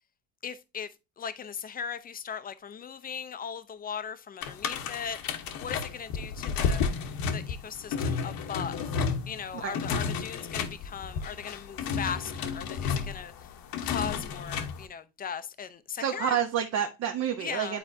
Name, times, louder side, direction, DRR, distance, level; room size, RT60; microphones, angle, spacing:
voice 1, 0.4-6.8 7.3-8.9 9.3-13.6 13.8-16.4 17.4-17.8, left 7 dB, 20° left, 0.6 m, -38 dB
sound 1, 4.4-14.8, left 5 dB, 55° left, 1.1 m, -32 dB
voice 2, 16.0-17.8, right 9 dB, 40° right, 0.8 m, -29 dB
9.3 x 4.1 x 2.7 m
supercardioid pair, 100°, 41 cm